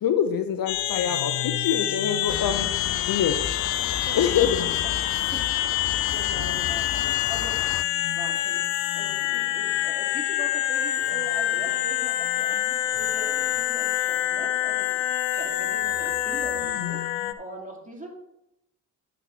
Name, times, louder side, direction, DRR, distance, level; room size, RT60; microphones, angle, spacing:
voice 1, 0.0-2.7 3.1-3.5 4.1-4.8, left 8 dB, 55° left, 9 dB, 0.8 m, -25 dB
sound 1, 0.7-17.3, left 13 dB, 80° left, 0.6 m, -26 dB
sound 2, 2.3-7.8, left 9 dB, 35° left, 0.4 m, -33 dB
voice 2, 5.0-5.5 5.8-8.7 8.9-15.1 15.3-18.1, right 2 dB, 20° right, -1 dB, 3.1 m, -41 dB
12.0 x 4.4 x 4.3 m, 0.84 s
hypercardioid pair, 55°, 43 cm